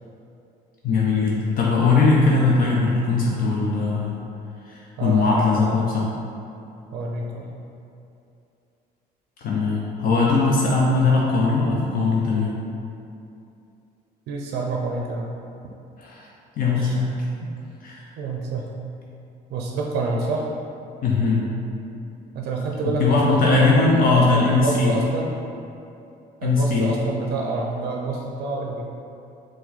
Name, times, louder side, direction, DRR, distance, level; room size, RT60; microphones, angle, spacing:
voice 1, 0.8-4.2 4.6-6.1 9.4-12.5 16.0-16.3 16.6-17.1 17.8-18.1 21.0-21.4 22.8-24.9 26.4-26.9, left 3 dB, 60° left, -4 dB, 0.6 m, -20 dB
voice 2, 5.0-6.0 6.9-7.5 14.3-15.3 16.7-16.9 18.2-18.8 19.5-20.5 22.3-25.4 26.4-28.8, right 3 dB, 75° right, -1 dB, 0.5 m, -28 dB
4.6 x 2.2 x 4.0 m, 2.7 s
cardioid pair, 110°, 17 cm